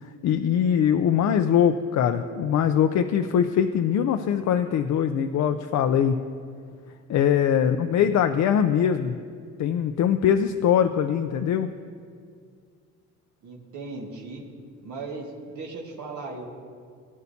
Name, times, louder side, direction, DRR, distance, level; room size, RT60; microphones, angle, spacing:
voice 1, 0.0-6.2 7.1-9.2 9.6-11.7, left 8 dB, 65° left, 7 dB, 0.6 m, -22 dB
voice 2, 7.6-7.9 13.4-14.4 14.8-16.5, right 3 dB, 75° right, -3 dB, 1.8 m, -37 dB
18.0 x 9.5 x 2.8 m, 2.1 s
cardioid pair, 90°, 30 cm